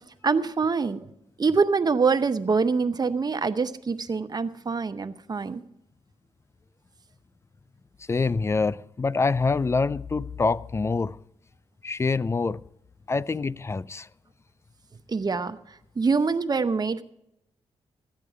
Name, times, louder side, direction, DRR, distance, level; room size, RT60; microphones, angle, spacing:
voice 1, 0.2-1.1 1.4-5.6 15.1-15.6 16.0-17.0, right 4 dB, 35° right, 0.8 m, -24 dB
voice 2, 8.1-11.2 11.8-12.6 13.1-14.1, left 4 dB, 25° left, 0.4 m, -25 dB
13.5 x 9.4 x 5.0 m
cardioid pair, 70°, 11 cm